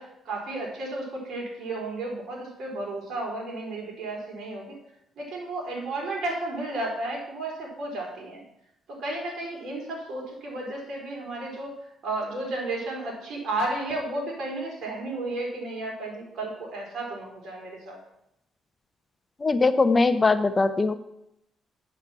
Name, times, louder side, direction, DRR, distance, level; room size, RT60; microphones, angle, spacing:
voice 1, 0.0-4.7 5.2-8.4 8.9-11.7 12.0-18.0, right 2 dB, 65° right, -1 dB, 4.6 m, -33 dB
voice 2, 19.4-21.0, left 3 dB, 30° left, 11 dB, 0.7 m, -21 dB
8.3 x 8.1 x 5.9 m, 0.80 s
cardioid pair, 90°, 0 cm